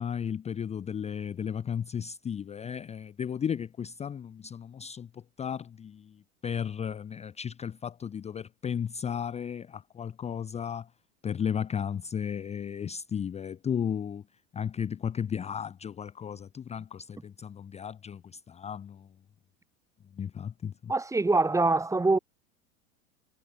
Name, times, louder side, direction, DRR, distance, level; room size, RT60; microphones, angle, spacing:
voice 1, 0.0-6.2 6.4-10.9 11.2-14.2 14.5-19.1 20.2-20.9, left 8 dB, 15° left, 0.9 m, -34 dB
voice 2, 20.9-22.2, right 3 dB, 10° right, 1.4 m, -24 dB
figure-of-eight pair, 85°, 40 cm